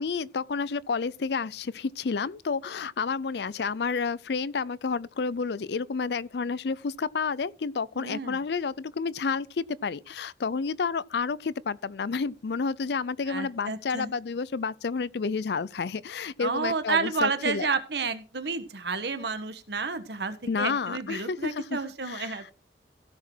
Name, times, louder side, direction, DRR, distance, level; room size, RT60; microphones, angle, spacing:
voice 1, 0.0-17.7 20.5-22.4, left 5 dB, 65° left, 0.5 m, -30 dB
voice 2, 8.0-8.4 13.3-14.2 16.4-22.5, right 4 dB, 65° right, 1.3 m, -31 dB
16.0 x 6.2 x 4.5 m
head